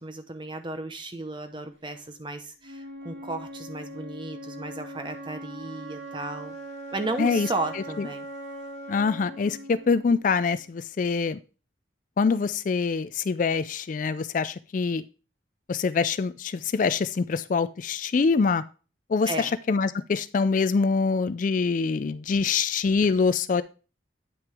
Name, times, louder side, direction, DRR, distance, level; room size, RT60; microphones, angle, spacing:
voice 1, 0.0-6.6 6.9-8.2 19.3-19.5, right 2 dB, 25° right, 8 dB, 0.9 m, -34 dB
Wind instrument woodwind instrument, 2.6-10.6, right 1 dB, 75° right, 2.1 m, -41 dB
voice 2, 8.9-11.4 12.2-15.0 15.7-18.6 19.1-23.6, left 5 dB, 45° left, 15 dB, 0.3 m, -24 dB
9.4 x 5.9 x 3.5 m, 0.34 s
head